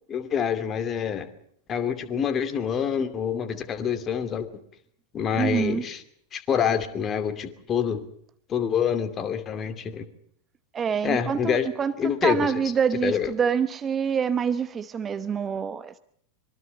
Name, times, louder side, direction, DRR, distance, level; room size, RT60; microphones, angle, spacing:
voice 1, 0.1-1.3 1.7-4.5 5.1-6.0 6.3-8.0 8.5-10.1 11.0-11.7 12.0-12.6 13.0-13.3, left 8 dB, 25° left, 2.5 m, -26 dB
voice 2, 5.3-5.9 10.7-11.9 12.2-16.0, right 7 dB, 20° right, 1.0 m, -26 dB
25.5 x 23.5 x 5.4 m
figure-of-eight pair, 90°, 0 cm